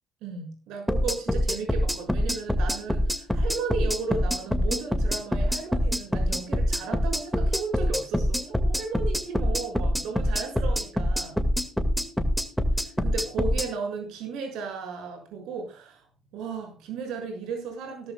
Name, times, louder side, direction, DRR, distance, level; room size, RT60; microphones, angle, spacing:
voice 1, 0.2-11.4 12.7-16.0 16.3-18.1, right 5 dB, 90° right, 3 dB, 6.6 m, -35 dB
sound 1, 0.9-13.7, equal, ahead, 2.0 m, -25 dB
17.0 x 13.0 x 2.3 m, 0.37 s
cardioid pair, 105°, 0 cm